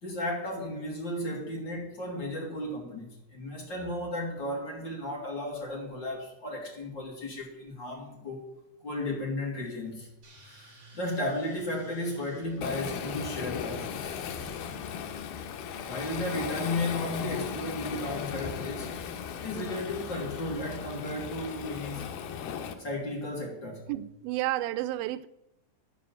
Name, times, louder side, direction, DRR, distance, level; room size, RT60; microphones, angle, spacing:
voice 1, 0.0-8.5 8.8-10.1 10.4-14.2 15.9-18.9 19.3-22.1 22.8-23.9, left 1 dB, 35° left, 3.0 m, -34 dB
sound 1, 10.2-15.0, equal, 30° right, 3.0 m, -52 dB
Waves surf, 12.6-22.7, left 7 dB, 90° left, 2.8 m, -37 dB
voice 2, 23.9-25.3, right 15 dB, 85° right, 2.4 m, -31 dB
10.5 x 7.3 x 7.0 m
omnidirectional pair, 4.2 m